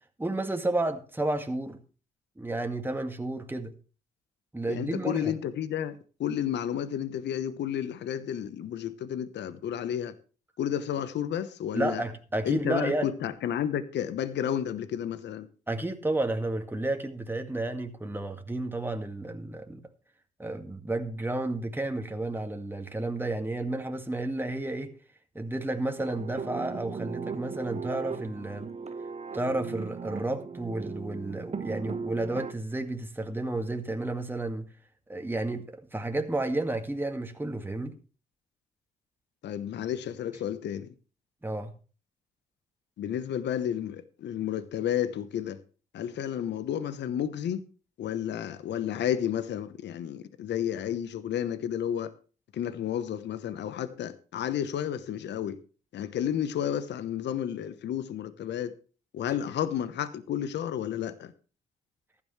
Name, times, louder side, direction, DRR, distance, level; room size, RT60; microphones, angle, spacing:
voice 1, 0.2-1.8 2.4-3.7 4.5-5.3 11.7-13.1 15.7-19.8 20.4-24.9 25.4-28.7 29.3-34.7 35.1-38.0 41.4-41.7, right 2 dB, 10° right, 2.0 m, -31 dB
voice 2, 4.7-10.1 10.6-12.0 12.4-15.5 39.4-40.9 43.0-45.6 45.9-47.6 48.0-52.1 52.5-55.6 55.9-58.7 59.1-61.3, left 10 dB, 70° left, 1.1 m, -31 dB
sound 1, 26.0-32.5, right 5 dB, 35° right, 1.0 m, -37 dB
15.0 x 11.0 x 3.2 m
supercardioid pair, 50°, 19 cm